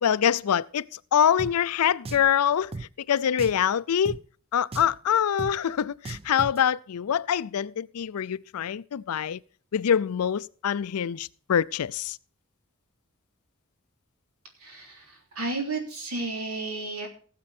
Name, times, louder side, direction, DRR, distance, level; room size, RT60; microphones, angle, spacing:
voice 1, 0.0-2.7 3.1-4.2 4.5-9.4 9.7-12.2, left 8 dB, 85° left, 0.4 m, -25 dB
Drum, 1.4-1.5 2.0-2.3 2.7-2.9 3.4-3.6 4.0-4.2 4.7-5.0 5.4-5.5 6.0-6.6, right 3 dB, 25° right, 0.5 m, -36 dB
voice 2, 14.6-17.1, right 3 dB, 80° right, 3.4 m, -33 dB
17.0 x 7.6 x 4.2 m
head